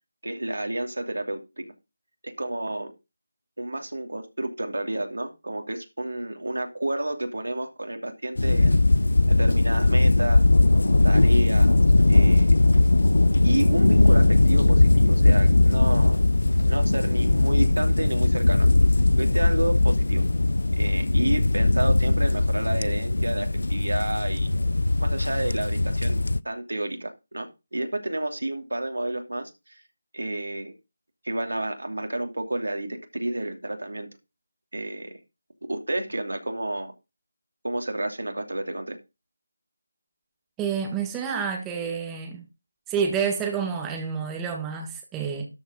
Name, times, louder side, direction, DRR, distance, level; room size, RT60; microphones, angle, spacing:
voice 1, 0.2-1.6 2.2-2.9 3.6-8.8 9.3-10.4 11.0-11.7 12.1-12.6 13.4-16.2 16.7-18.7 19.2-20.2 20.8-24.5 25.0-29.8 30.1-30.7 31.2-34.1 34.7-35.2 35.7-36.9 37.6-39.0, right 1 dB, 75° right, 2.9 m, -30 dB
sound 1, 8.4-26.4, left 2 dB, 70° left, 0.5 m, -19 dB
voice 2, 40.6-42.4 42.9-45.5, right 6 dB, 10° right, 1.5 m, -28 dB
13.0 x 5.1 x 6.3 m
figure-of-eight pair, 160°, 0 cm